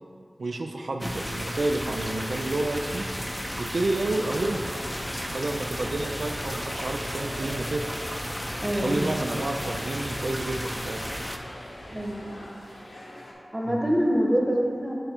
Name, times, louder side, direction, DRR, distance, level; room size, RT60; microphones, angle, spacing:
voice 1, 0.4-3.0 3.6-4.7 5.3-7.9 8.7-11.0 13.7-13.8, right 2 dB, 80° right, 3 dB, 0.3 m, -30 dB
sound 1, 1.0-11.4, equal, 5° left, 0.5 m, -33 dB
sound 2, 4.1-13.3, left 1 dB, 85° left, 1.1 m, -43 dB
voice 2, 8.6-9.1 11.9-12.5 13.5-15.0, equal, 15° right, -1 dB, 1.0 m, -25 dB
7.9 x 3.4 x 4.4 m, 2.3 s
wide cardioid pair, 50°, 0 cm